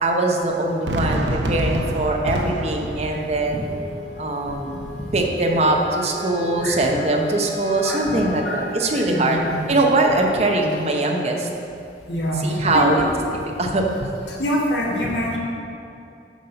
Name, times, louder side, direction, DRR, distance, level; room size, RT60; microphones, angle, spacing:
voice 1, 0.0-3.6 4.2-4.7 5.1-9.4 9.7-11.5 12.4-13.0 13.6-14.2, right 2 dB, 35° right, 1 dB, 0.8 m, -21 dB
Fireworks, 0.9-5.9, right 1 dB, 85° right, 0.7 m, -28 dB
Wind instrument woodwind instrument, 3.5-12.0, left 3 dB, 50° left, 1.4 m, -39 dB
voice 2, 7.8-8.1 8.4-8.7 8.9-9.6 12.1-13.1 14.4-15.4, equal, 85° left, -4 dB, 1.4 m, -25 dB
7.3 x 5.5 x 5.7 m, 2.6 s
head